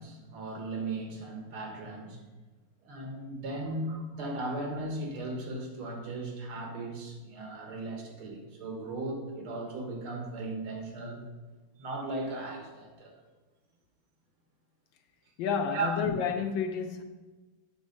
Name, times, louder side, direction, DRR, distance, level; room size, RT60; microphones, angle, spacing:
voice 1, 0.0-2.2 2.8-11.2 11.8-13.1 15.7-16.1, right 2 dB, 80° right, 2.2 m, -37 dB
voice 2, 15.4-17.0, left 7 dB, 75° left, 1.2 m, -30 dB
8.2 x 3.7 x 6.5 m
omnidirectional pair, 2.3 m